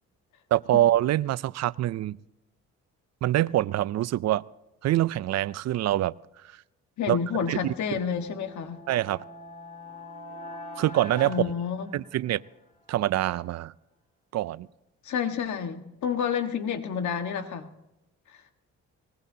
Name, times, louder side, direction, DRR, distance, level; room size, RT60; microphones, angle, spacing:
voice 1, 0.5-2.2 3.2-4.4 4.8-6.1 7.1-7.2 7.5-7.7 8.9-9.2 10.8-11.3 11.9-12.4 12.9-13.7 14.3-14.7, right 14 dB, 60° right, 0.5 m, -25 dB
voice 2, 7.0-8.8 11.2-12.0 15.0-17.7 18.3-18.4, left 7 dB, 70° left, 1.6 m, -29 dB
sound 1, 8.1-12.5, left 1 dB, 25° left, 2.4 m, -43 dB
21.0 x 19.5 x 2.8 m
cardioid pair, 90°, 30 cm